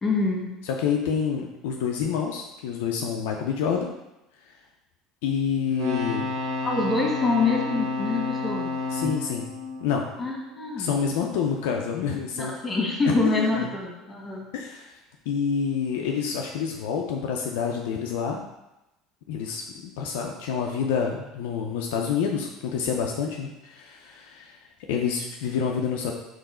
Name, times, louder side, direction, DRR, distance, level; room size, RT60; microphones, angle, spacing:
voice 1, 0.0-0.5 6.6-8.7 10.2-10.9 12.4-14.4, left 3 dB, 25° left, -2 dB, 1.5 m, -26 dB
voice 2, 0.7-3.9 5.2-6.3 8.9-9.5 9.8-10.1 10.8-12.6 13.1-13.7 14.5-14.9 15.3-18.4 19.3-24.6 24.9-26.1, left 7 dB, 75° left, 1 dB, 0.4 m, -28 dB
sound 1, 5.7-10.7 13.5-13.6, left 3 dB, 65° right, 1.0 m, -31 dB
3.7 x 3.0 x 4.2 m, 0.94 s
hypercardioid pair, 80°, 0 cm